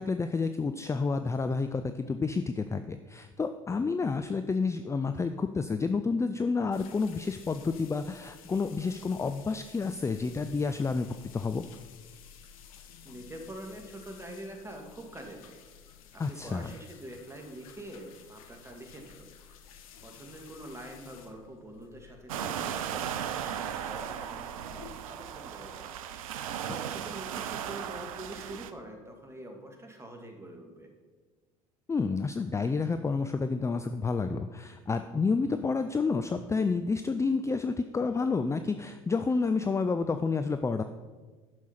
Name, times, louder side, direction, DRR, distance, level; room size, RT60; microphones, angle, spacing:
voice 1, 0.0-11.6 16.2-16.7 31.9-40.8, left 4 dB, 15° left, 9 dB, 0.5 m, -30 dB
sound 1, 6.7-25.0, left 7 dB, 75° left, 0.9 m, -53 dB
voice 2, 12.8-15.5 16.1-30.9, right 1 dB, 15° right, 3 dB, 2.2 m, -46 dB
sound 2, 22.3-28.7, right 9 dB, 75° right, 0.6 m, -36 dB
10.5 x 6.4 x 5.7 m, 1.4 s
hypercardioid pair, 65°, 18 cm